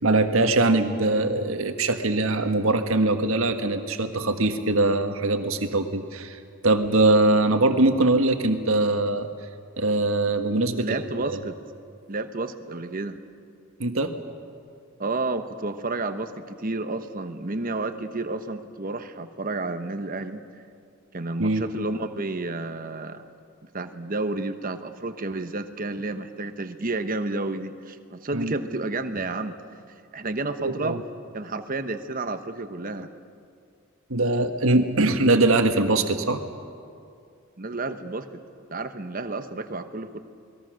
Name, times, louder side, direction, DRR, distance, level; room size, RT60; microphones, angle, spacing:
voice 1, 0.0-9.3 9.8-11.0 11.2-11.4 13.8-14.1 21.4-21.6 28.3-28.5 30.6-31.0 34.1-36.4, right 2 dB, 70° right, 7 dB, 1.6 m, -22 dB
voice 2, 10.8-11.6 12.1-13.2 15.0-20.4 21.1-23.3 23.7-29.5 30.1-31.0 31.3-33.1 37.6-38.3 38.7-40.2, right 2 dB, 40° right, 9 dB, 1.1 m, -31 dB
28.5 x 20.5 x 6.4 m, 2.4 s
head